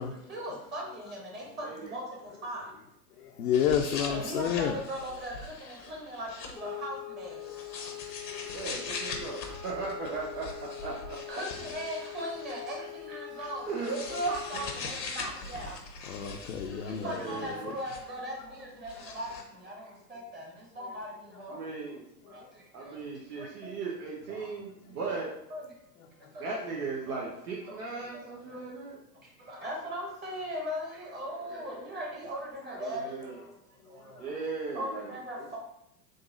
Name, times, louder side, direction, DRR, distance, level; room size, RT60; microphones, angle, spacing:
voice 1, 0.3-2.0 2.4-2.7 4.1-5.3 5.7-7.4 11.3-15.7 16.8-19.3 19.6-19.7 20.1-20.5 20.8-21.1 21.4-21.6 22.3-22.4 23.4-23.5 24.4-24.5 25.2-25.6 26.3-26.4 27.7-27.8 29.5-33.1 34.7-35.6, equal, 20° right, -2 dB, 1.1 m, -38 dB
voice 2, 1.6-1.9 3.9-4.3 8.5-9.4 9.6-11.2 13.4-14.6 16.4-16.5 16.9-17.7 21.5-22.0 22.7-25.3 26.4-29.0 31.3-31.9 32.7-33.4 34.2-35.6, right 4 dB, 70° right, -3 dB, 1.0 m, -37 dB
voice 3, 3.4-4.8 16.1-17.1, left 8 dB, 60° left, 2 dB, 0.6 m, -29 dB
sound 1, 3.5-6.7 7.4-12.7 13.4-18.2 18.5-19.4, left 4 dB, 80° left, 0.9 m, -42 dB
sound 2, 6.5-14.9, left 14 dB, 5° left, 0.5 m, -43 dB
3.9 x 2.6 x 3.7 m, 0.81 s
hypercardioid pair, 100°, 49 cm